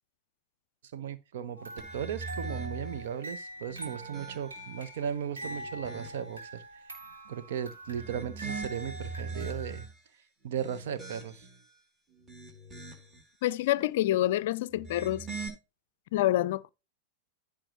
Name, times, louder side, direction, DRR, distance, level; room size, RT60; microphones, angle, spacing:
voice 1, 0.9-6.6 7.3-9.9 10.4-11.4, right 8 dB, 55° right, 1.1 m, -36 dB
sound 1, 1.6-9.9, right 1 dB, 75° right, 3.3 m, -44 dB
sound 2, 1.8-3.1 3.6-4.8 5.3-6.4 7.8-10.0 10.5-11.6 12.1-13.2 14.7-15.5, right 4 dB, 20° right, 3.0 m, -42 dB
voice 2, 13.4-15.3 16.1-16.7, left 14 dB, 55° left, 0.4 m, -27 dB
15.0 x 5.1 x 3.1 m
figure-of-eight pair, 90°, 0 cm